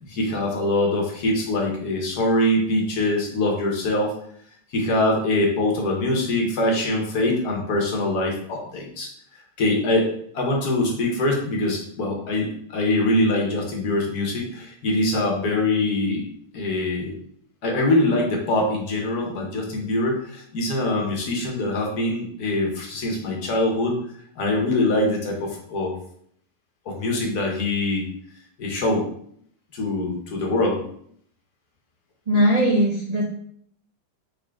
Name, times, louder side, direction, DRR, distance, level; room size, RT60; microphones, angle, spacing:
voice 1, 0.0-4.1 4.7-9.1 9.6-16.2 16.5-17.1 17.6-24.0 24.4-26.0 26.8-28.1 28.6-29.1 29.7-30.8, left 1 dB, 70° left, 0 dB, 1.6 m, -23 dB
voice 2, 32.3-33.3, equal, 65° right, -2 dB, 0.4 m, -19 dB
3.9 x 3.8 x 3.5 m, 0.64 s
omnidirectional pair, 1.7 m